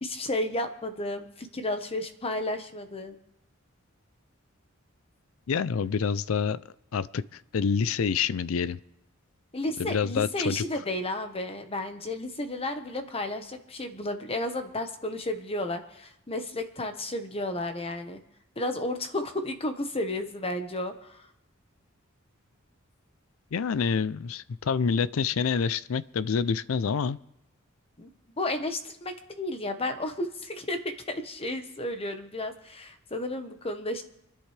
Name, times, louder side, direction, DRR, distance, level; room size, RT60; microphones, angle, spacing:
voice 1, 0.0-3.2 9.5-18.2 18.6-21.3 28.0-28.1 28.4-34.0, left 1 dB, 30° left, 7 dB, 1.2 m, -32 dB
voice 2, 5.5-6.6 6.9-8.8 9.8-10.6 23.5-27.2, left 6 dB, 70° left, 18 dB, 0.4 m, -27 dB
29.0 x 10.0 x 3.3 m, 0.84 s
head